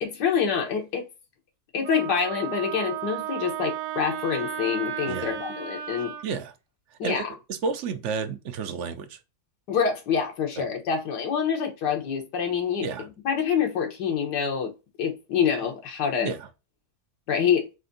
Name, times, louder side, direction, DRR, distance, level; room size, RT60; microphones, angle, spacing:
voice 1, 0.0-1.1 1.7-6.1 7.0-7.3 9.7-14.7 15.0-16.3 17.3-17.7, left 7 dB, 85° left, 1.7 m, -26 dB
Wind instrument woodwind instrument, 1.8-6.2, right 10 dB, 85° right, 1.2 m, -34 dB
voice 2, 6.2-6.5 7.0-7.2 7.5-9.2 10.6-10.7 12.8-13.1 16.2-16.5, right 5 dB, 60° right, 0.8 m, -31 dB
4.2 x 2.6 x 3.9 m
omnidirectional pair, 1.7 m